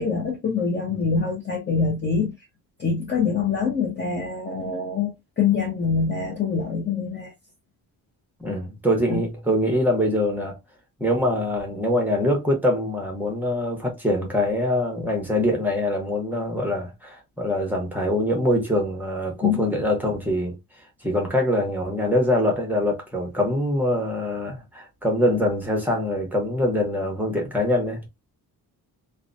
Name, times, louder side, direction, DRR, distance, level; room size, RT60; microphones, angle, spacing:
voice 1, 0.0-2.3 2.8-7.3 9.1-9.2 19.4-19.7, left 5 dB, 30° left, 0.6 m, -24 dB
voice 2, 8.4-10.6 11.0-20.5 21.0-28.1, left 1 dB, 5° right, 0.8 m, -24 dB
2.8 x 2.1 x 2.5 m
wide cardioid pair, 170°, 37 cm